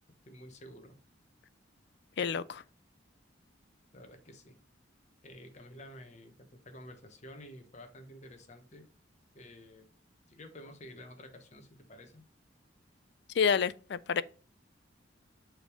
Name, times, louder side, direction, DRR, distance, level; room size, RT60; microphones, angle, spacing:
voice 1, 0.2-1.0 3.9-4.6 5.2-8.9 9.3-9.9 10.3-12.2, left 1 dB, 35° left, 1.1 m, -51 dB
voice 2, 2.2-2.6 13.3-14.2, left 6 dB, 60° left, 0.4 m, -28 dB
7.4 x 3.5 x 4.9 m
head